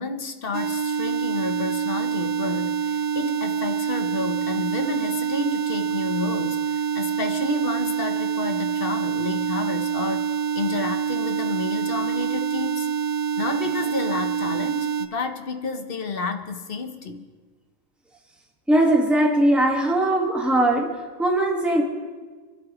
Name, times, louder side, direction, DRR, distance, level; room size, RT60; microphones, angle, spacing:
voice 1, 0.0-12.9 13.4-17.3, left 4 dB, 45° left, 6 dB, 1.1 m, -31 dB
sound 1, 0.5-15.1, right 7 dB, 80° right, 1.1 m, -26 dB
voice 2, 18.7-21.8, right 1 dB, ahead, -1 dB, 1.6 m, -20 dB
24.0 x 12.5 x 3.1 m, 1.4 s
omnidirectional pair, 1.4 m